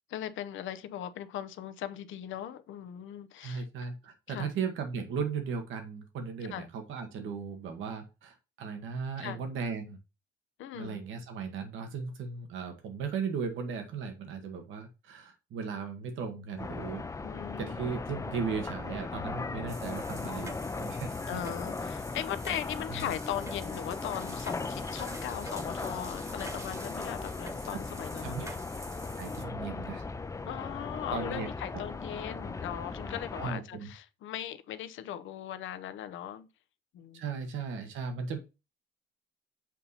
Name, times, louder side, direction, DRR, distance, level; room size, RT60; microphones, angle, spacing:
voice 1, 0.1-3.6 4.3-4.5 6.5-6.7 9.2-9.4 10.6-11.0 17.2-18.0 21.3-28.3 30.4-36.5 36.9-37.2, left 11 dB, 75° left, 0.6 m, -39 dB
voice 2, 3.4-10.0 10.7-17.1 17.6-21.4 22.5-22.6 22.9-23.1 27.7-27.8 28.2-28.5 29.2-30.0 31.1-31.8 33.4-33.9 37.1-38.4, right 5 dB, 85° right, 1.3 m, -37 dB
sound 1, 16.6-33.5, left 3 dB, 15° left, 0.4 m, -38 dB
sound 2, 19.7-29.4, right 1 dB, 15° right, 1.1 m, -47 dB
7.4 x 2.8 x 5.4 m
cardioid pair, 90°, 20 cm